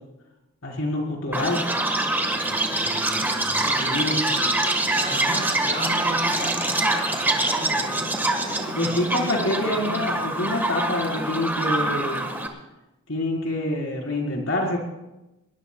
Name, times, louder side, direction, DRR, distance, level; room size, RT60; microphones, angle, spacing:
voice 1, 0.6-1.6 3.8-4.2 8.4-12.3 13.1-14.8, left 1 dB, 70° left, -1 dB, 4.6 m, -26 dB
Chirp tweet, 1.3-12.5, right 2 dB, 10° right, 1.6 m, -25 dB
voice 2, 2.3-10.1, right 1 dB, 45° right, 0 dB, 4.8 m, -37 dB
22.0 x 20.0 x 2.4 m, 0.97 s
head